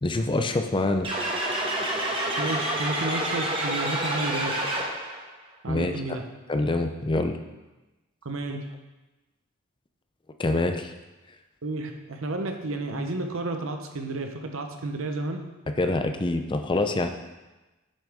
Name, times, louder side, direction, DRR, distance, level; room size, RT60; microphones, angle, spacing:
voice 1, 0.0-1.1 5.7-5.9 6.5-7.4 10.4-10.9 15.8-17.1, left 2 dB, 25° left, 6 dB, 0.5 m, -25 dB
sound 1, 1.0-5.2, right 1 dB, 25° right, 1.3 m, -28 dB
voice 2, 2.4-4.6 5.6-6.2 8.2-8.7 11.6-15.4, right 2 dB, 75° right, 5 dB, 0.9 m, -31 dB
8.5 x 6.4 x 3.6 m, 1.1 s
head